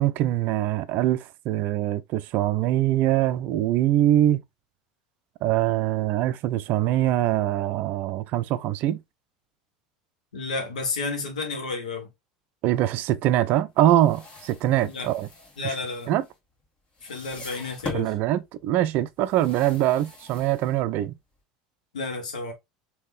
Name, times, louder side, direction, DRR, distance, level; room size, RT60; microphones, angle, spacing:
voice 1, 0.0-4.4 5.4-9.0 12.6-15.3 15.6-15.7 16.1-16.2 17.9-21.1, right 13 dB, 55° right, 0.4 m, -23 dB
voice 2, 10.3-12.1 14.8-15.1 15.6-16.1 17.0-18.2 21.9-22.5, left 3 dB, 80° left, 1.2 m, -31 dB
sound 1, 13.9-16.6 16.9-18.2 19.2-21.1, left 3 dB, 35° left, 1.8 m, -42 dB
3.6 x 2.8 x 2.4 m
hypercardioid pair, 75°, 4 cm